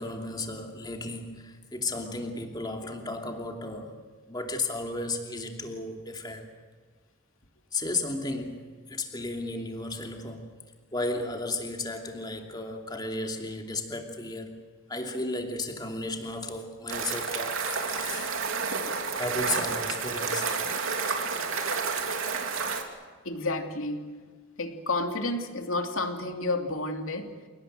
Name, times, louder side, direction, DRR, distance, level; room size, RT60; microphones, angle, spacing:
voice 1, 0.0-4.0 4.3-6.5 7.7-8.6 8.9-10.5 10.9-14.5 14.9-18.3 19.2-20.5, left 2 dB, 20° left, 3 dB, 2.8 m, -34 dB
sound 1, 16.9-22.8, right 5 dB, 70° right, 3.2 m, -30 dB
voice 2, 23.2-24.3 24.6-27.4, left 2 dB, 70° left, 5 dB, 2.9 m, -31 dB
29.0 x 18.5 x 7.9 m, 1.5 s
head